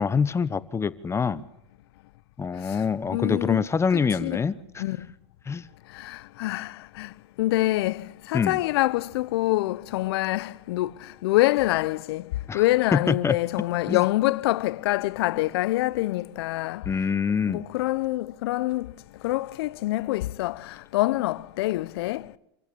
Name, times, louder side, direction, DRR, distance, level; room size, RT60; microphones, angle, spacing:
voice 1, 0.0-1.4 2.4-4.5 5.5-5.7 8.3-8.6 12.5-12.6 12.9-13.3 13.9-14.0 16.9-17.6, left 6 dB, 20° left, 1.1 m, -25 dB
voice 2, 3.1-4.5 4.8-5.1 5.9-16.9 17.5-18.9 19.2-22.3, left 17 dB, 70° left, 0.8 m, -26 dB
27.0 x 15.5 x 8.5 m
hypercardioid pair, 100°, 14 cm